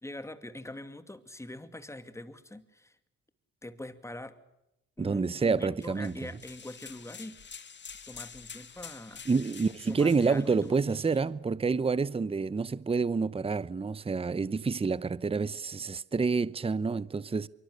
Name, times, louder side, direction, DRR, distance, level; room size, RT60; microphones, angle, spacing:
voice 1, 0.0-3.0 3.6-4.4 5.0-7.4 8.1-9.3 9.9-11.1, left 1 dB, 10° left, 2.4 m, -43 dB
voice 2, 5.0-6.1 9.3-17.5, right 4 dB, 20° right, 0.8 m, -28 dB
sound 1, 5.8-11.2, left 6 dB, 35° left, 1.7 m, -48 dB
25.0 x 24.0 x 6.6 m
cardioid pair, 90°, 30 cm